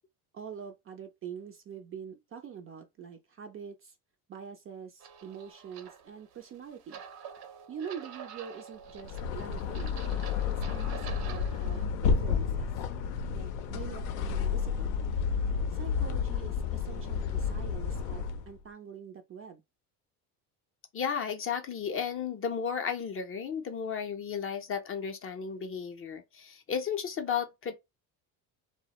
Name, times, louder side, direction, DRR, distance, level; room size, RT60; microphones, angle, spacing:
voice 1, 0.3-4.0 4.3-7.0 7.7-10.0 10.7-12.7 13.3-15.0 15.7-19.6, right 7 dB, 30° right, 0.4 m, -45 dB
sound 1, 5.0-11.9, right 7 dB, 55° right, 0.7 m, -47 dB
sound 2, 8.9-18.5, left 6 dB, 80° left, 0.6 m, -31 dB
voice 2, 20.9-27.7, left 7 dB, 30° left, 0.5 m, -34 dB
2.1 x 2.0 x 2.8 m
supercardioid pair, 80°, 45 cm